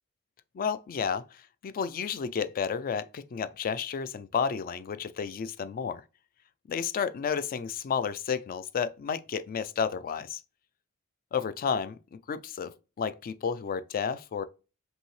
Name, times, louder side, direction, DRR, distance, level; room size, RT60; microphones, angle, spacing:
voice 1, 0.5-6.0 6.7-10.4 11.3-12.0 12.3-14.4, left 6 dB, 40° left, 0.3 m, -31 dB
5.3 x 2.8 x 3.1 m
head